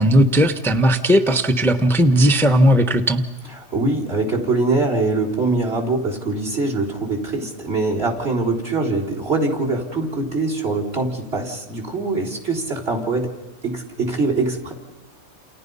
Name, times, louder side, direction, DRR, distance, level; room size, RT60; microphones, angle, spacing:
voice 1, 0.0-3.2, equal, ahead, 8 dB, 0.9 m, -16 dB
voice 2, 3.7-13.3 13.6-14.7, right 3 dB, 45° right, 3 dB, 4.4 m, -23 dB
30.0 x 28.5 x 5.5 m, 1.2 s
omnidirectional pair, 1.5 m